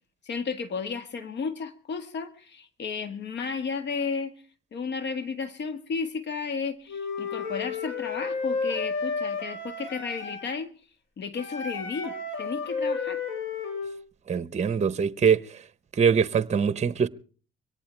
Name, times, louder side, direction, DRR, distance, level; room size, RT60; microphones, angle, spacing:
voice 1, 0.2-4.3 4.7-10.7 11.2-13.2, left 5 dB, 60° left, 1.6 m, -33 dB
Wind instrument woodwind instrument, 6.9-10.5 11.4-13.9, left 4 dB, 85° left, 7.3 m, -32 dB
voice 2, 14.3-15.6 15.9-17.1, right 6 dB, 35° right, 0.9 m, -23 dB
23.5 x 18.0 x 3.4 m
cardioid pair, 90°, 20 cm